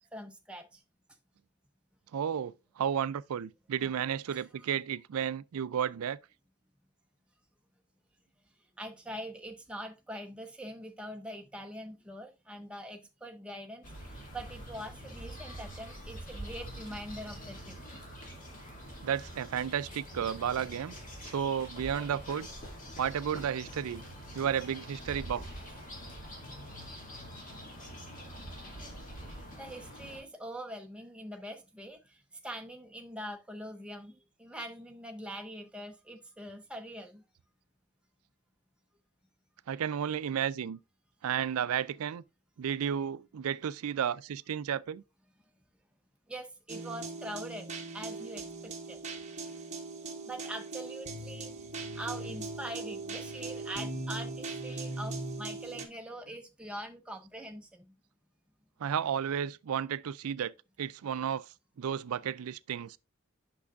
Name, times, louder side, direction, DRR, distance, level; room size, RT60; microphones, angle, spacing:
voice 1, 0.1-0.8 3.8-3.9 4.3-4.4 8.8-13.8 14.3-17.8 26.5-26.7 29.3-37.2 46.3-47.7 47.9-49.0 50.3-51.5 51.9-57.9, right 1 dB, 5° right, 0.7 m, -43 dB
voice 2, 2.1-6.2 19.0-21.0 21.2-22.5 23.0-24.0 24.3-25.4 39.7-40.8 41.2-42.2 42.6-45.0 58.8-60.5 60.8-61.5 61.8-63.0, right 8 dB, 80° right, 0.4 m, -32 dB
sound 1, 13.8-30.2, equal, 35° left, 2.2 m, -45 dB
sound 2, 46.7-55.8, right 3 dB, 30° right, 0.9 m, -40 dB
8.3 x 6.1 x 2.4 m
head